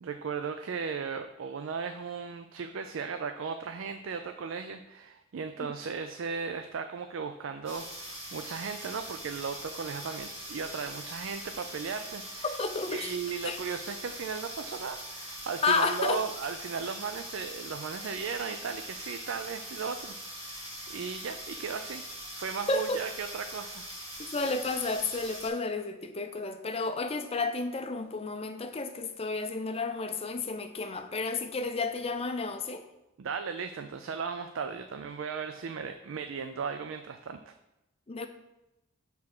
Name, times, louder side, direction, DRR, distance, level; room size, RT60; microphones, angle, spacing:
voice 1, 0.0-12.6 12.9-22.0 22.3-23.8 33.2-37.5, right 5 dB, 65° right, 8 dB, 0.4 m, -36 dB
sound 1, 7.6-25.5, equal, 30° right, 2.8 m, -42 dB
voice 2, 12.4-13.1 13.4-13.6 15.6-16.2 22.7-23.0 24.2-32.8 38.1-38.3, left 3 dB, 30° left, 8 dB, 0.5 m, -31 dB
6.6 x 3.6 x 6.0 m, 0.92 s
head